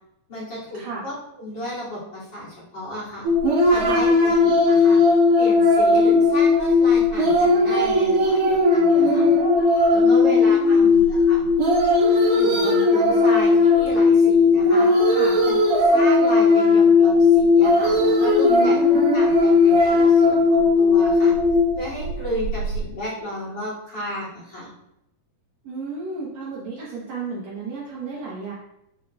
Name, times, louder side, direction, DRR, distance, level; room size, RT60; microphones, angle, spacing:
voice 1, 0.3-3.3 3.7-5.0 5.4-9.3 9.9-11.0 11.3-11.4 12.3-14.9 15.4-18.8 19.1-21.3 21.7-24.7, left 1 dB, 30° left, -8 dB, 2.8 m, -33 dB
sound 1, 3.2-22.8, left 3 dB, 60° right, 1.9 m, -17 dB
voice 2, 10.0-11.0 15.1-15.4 18.5-19.0 25.6-28.5, right 4 dB, 75° right, -6 dB, 1.5 m, -33 dB
7.6 x 6.4 x 2.4 m, 0.82 s
omnidirectional pair, 4.7 m